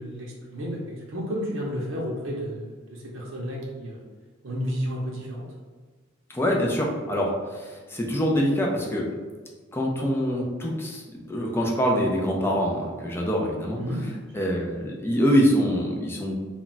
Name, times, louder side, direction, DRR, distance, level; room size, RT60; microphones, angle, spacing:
voice 1, 0.0-4.0 4.4-5.5 13.8-14.0, equal, 65° right, -3 dB, 0.6 m, -32 dB
voice 2, 6.3-9.1 9.7-11.0 11.3-13.8 14.3-16.4, equal, 10° left, -1 dB, 0.4 m, -24 dB
2.3 x 2.2 x 3.9 m, 1.4 s
head